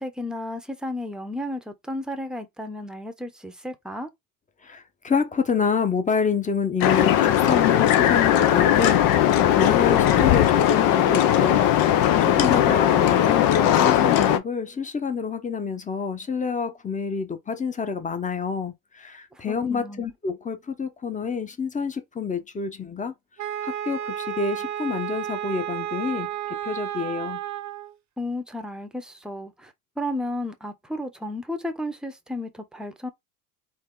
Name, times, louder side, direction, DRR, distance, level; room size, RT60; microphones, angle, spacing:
voice 1, 0.0-4.1 12.4-12.7 19.3-20.0 28.2-33.1, left 1 dB, ahead, 1.0 m, -33 dB
voice 2, 4.6-23.1 23.6-27.4, left 5 dB, 15° left, 1.1 m, -28 dB
sound 1, 6.8-14.4, left 11 dB, 50° left, 1.0 m, -19 dB
Wind instrument woodwind instrument, 23.4-27.9, right 11 dB, 40° right, 1.0 m, -32 dB
4.2 x 3.0 x 3.8 m
hypercardioid pair, 90°, 45 cm